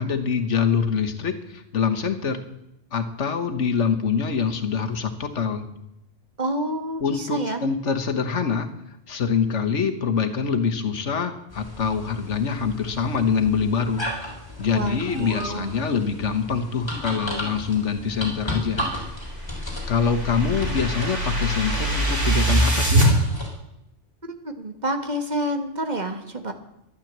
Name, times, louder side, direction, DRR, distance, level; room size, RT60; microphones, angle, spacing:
voice 1, 0.0-2.4 2.9-5.7 7.0-8.7 9.1-18.9 19.9-23.0, left 6 dB, 80° left, 7 dB, 1.6 m, -25 dB
voice 2, 6.4-7.6 14.7-15.7 24.2-26.5, right 1 dB, 40° right, 6 dB, 1.5 m, -28 dB
sound 1, 11.5-23.5, left 1 dB, 20° left, 3.7 m, -35 dB
sound 2, 19.1-23.1, right 1 dB, 85° right, 3.5 m, -23 dB
12.0 x 11.5 x 7.4 m, 0.85 s
omnidirectional pair, 1.2 m